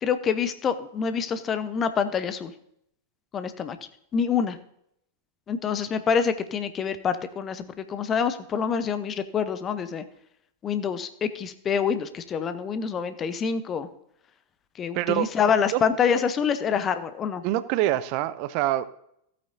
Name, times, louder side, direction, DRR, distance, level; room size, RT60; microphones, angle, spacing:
voice 1, 0.0-2.5 3.3-3.8 4.1-4.6 5.5-10.0 10.6-13.9 14.8-17.4, left 6 dB, 25° left, 11 dB, 0.9 m, -26 dB
voice 2, 14.9-15.3 15.7-15.8 17.4-18.9, right 14 dB, 45° right, 15 dB, 0.5 m, -25 dB
15.5 x 8.6 x 2.7 m, 0.73 s
figure-of-eight pair, 90°, 0 cm